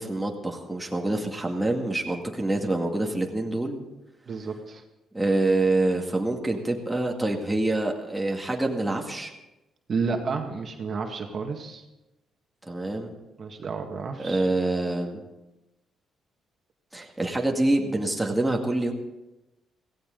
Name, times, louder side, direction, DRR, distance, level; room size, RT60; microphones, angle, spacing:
voice 1, 0.0-3.8 5.1-9.3 12.6-13.1 14.2-15.2 16.9-18.9, right 2 dB, 10° right, 1 dB, 2.1 m, -26 dB
voice 2, 4.3-4.8 9.9-11.8 13.4-14.5, right 4 dB, 50° right, 3 dB, 1.8 m, -31 dB
16.5 x 15.5 x 3.9 m, 0.99 s
cardioid pair, 90°, 0 cm